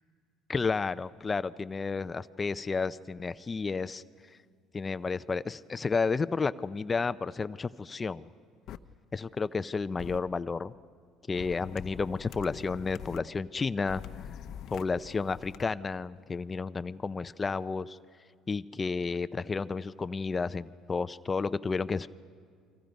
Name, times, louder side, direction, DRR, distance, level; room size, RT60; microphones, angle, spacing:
voice 1, 0.5-4.4 4.7-8.3 9.1-10.7 11.3-14.0 14.7-18.0 18.5-22.1, left 4 dB, 25° left, 14 dB, 0.5 m, -32 dB
sound 1, 8.7-8.8 10.0-10.2 11.4-13.2 13.9-15.6, left 10 dB, 60° left, 0.7 m, -44 dB
30.0 x 25.5 x 5.3 m, 2.1 s
supercardioid pair, 95°, 0 cm